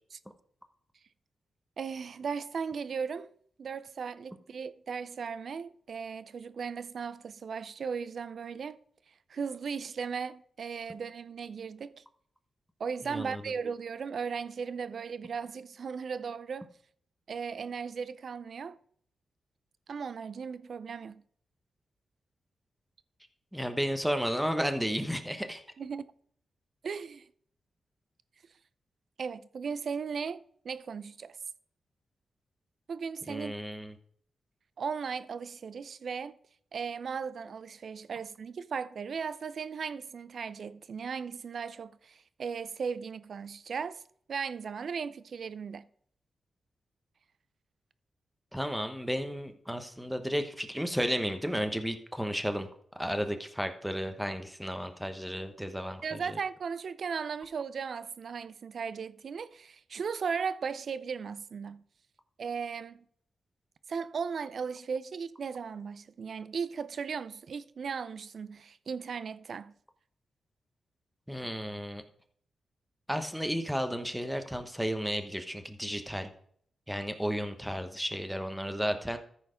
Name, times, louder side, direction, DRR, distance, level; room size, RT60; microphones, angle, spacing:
voice 1, 1.8-3.3 3.6-8.8 9.3-12.0 12.8-16.7 17.3-18.8 19.9-21.2 25.8-26.0 26.8-27.3 29.2-31.4 32.9-33.5 34.8-36.3 36.7-44.0 44.3-45.9 56.0-61.8 62.4-63.0 63.9-69.7, right 6 dB, 60° right, 0.5 m, -37 dB
voice 2, 13.0-13.4 23.5-25.6 33.3-33.9 48.5-52.7 52.9-56.4 71.3-72.0 73.1-76.3 76.9-79.2, equal, ahead, 1.1 m, -33 dB
13.5 x 4.6 x 5.1 m
cardioid pair, 85°, 0 cm